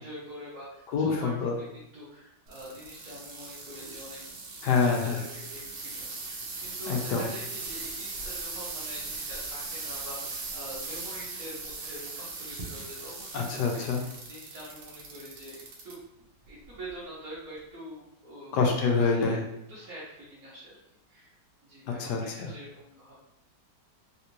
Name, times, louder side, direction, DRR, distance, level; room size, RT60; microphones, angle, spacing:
voice 1, 0.0-4.2 4.6-18.5 18.9-19.4 19.7-20.8 21.1-21.4 21.6-23.1, equal, 65° right, -9 dB, 1.4 m, -45 dB
voice 2, 0.9-1.5 4.6-5.2 6.9-7.2 13.3-14.0 18.5-19.4 21.9-22.5, left 5 dB, 75° left, 1 dB, 1.2 m, -26 dB
sound 1, 2.5-15.9 16.5-16.9 17.6-17.7, right 3 dB, 85° right, 1.4 m, -39 dB
3.5 x 2.5 x 2.9 m, 0.82 s
omnidirectional pair, 1.9 m